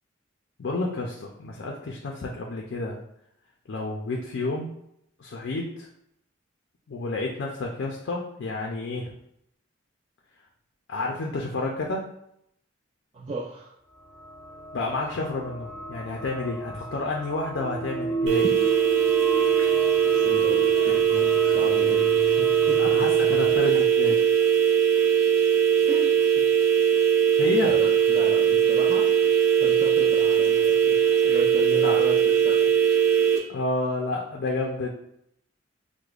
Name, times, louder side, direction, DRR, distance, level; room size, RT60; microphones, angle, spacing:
voice 1, 0.6-3.0 3.7-4.7 5.2-5.9 6.9-9.1 10.9-12.1 14.7-18.5 22.8-24.2 27.4-27.7 31.8-31.9 33.5-34.9, left 2 dB, 65° left, 0 dB, 0.4 m, -30 dB
voice 2, 13.1-13.7 20.0-23.0 25.9-26.1 26.4-26.5 27.6-29.1 29.6-31.0 31.2-32.7, right 2 dB, 30° right, -3 dB, 0.3 m, -34 dB
sound 1, 14.1-23.6, right 2 dB, 5° left, 0.6 m, -34 dB
sound 2, 18.3-33.4, right 7 dB, 70° right, 0.6 m, -20 dB
4.7 x 2.1 x 2.4 m, 0.76 s
head